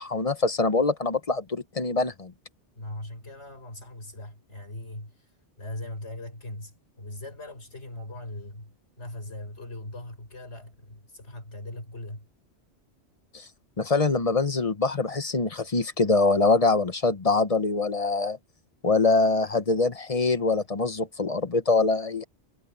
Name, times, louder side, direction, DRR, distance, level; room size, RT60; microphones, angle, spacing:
voice 1, 0.0-2.3 13.3-13.4 13.8-18.4 18.8-22.2, left 3 dB, 35° left, 0.9 m, -24 dB
voice 2, 2.7-5.3 5.6-12.3, left 1 dB, 80° left, 5.4 m, -40 dB
omnidirectional pair, 1.2 m